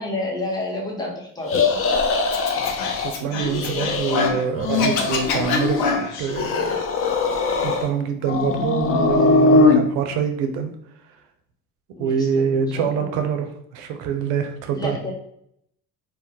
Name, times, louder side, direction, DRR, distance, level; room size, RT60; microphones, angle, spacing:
voice 1, 0.0-1.6 2.7-3.0 12.0-13.1 14.7-15.1, left 2 dB, 10° left, -2 dB, 0.8 m, -30 dB
sound 1, 1.5-3.1 3.4-4.3 4.5-5.9 6.3-7.9 8.2-9.8, left 3 dB, 30° left, 0.4 m, -21 dB
Scratching (performance technique), 2.3-4.4 4.7-6.3, left 4 dB, 80° left, 0.6 m, -26 dB
voice 2, 3.0-5.8 6.2-6.8 7.6-10.7 12.0-15.0, right 6 dB, 85° right, 6 dB, 0.5 m, -25 dB
2.2 x 2.1 x 2.7 m, 0.73 s
supercardioid pair, 65°, 45 cm